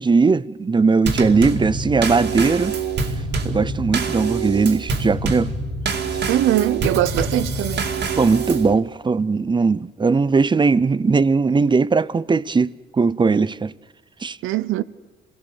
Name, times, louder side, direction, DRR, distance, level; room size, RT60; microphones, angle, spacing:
voice 1, 0.0-2.7 3.4-5.5 8.2-13.7 14.2-14.4, right 4 dB, 25° right, 0.6 m, -19 dB
Drum kit / Snare drum / Bass drum, 1.1-8.7, right 4 dB, 60° right, 2.4 m, -25 dB
voice 2, 6.3-7.8 14.4-14.8, right 13 dB, 85° right, 0.8 m, -21 dB
26.5 x 18.0 x 7.0 m
cardioid pair, 90°, 20 cm